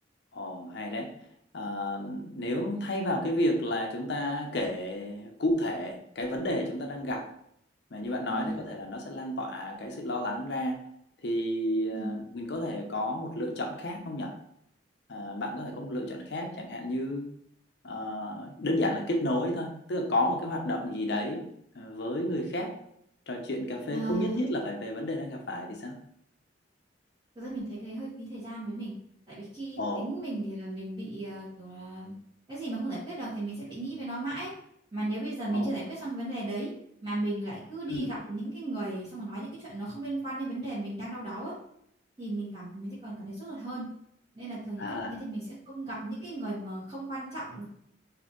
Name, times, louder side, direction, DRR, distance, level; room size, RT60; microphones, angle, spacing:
voice 1, 0.3-1.1 1.5-7.3 7.9-10.8 11.2-14.3 15.1-17.3 17.8-21.5 21.7-22.7 23.3-26.0 29.8-30.1 35.5-35.7 37.9-38.1 44.8-45.2, left 1 dB, 60° left, 2 dB, 0.6 m, -31 dB
voice 2, 8.3-8.6 11.9-12.2 23.9-24.4 27.3-28.9 29.3-32.1 32.5-34.5 34.9-36.7 37.0-41.5 42.2-43.9 44.3-47.7, right 2 dB, 30° right, -13 dB, 1.5 m, -35 dB
4.1 x 2.7 x 3.0 m, 0.71 s
head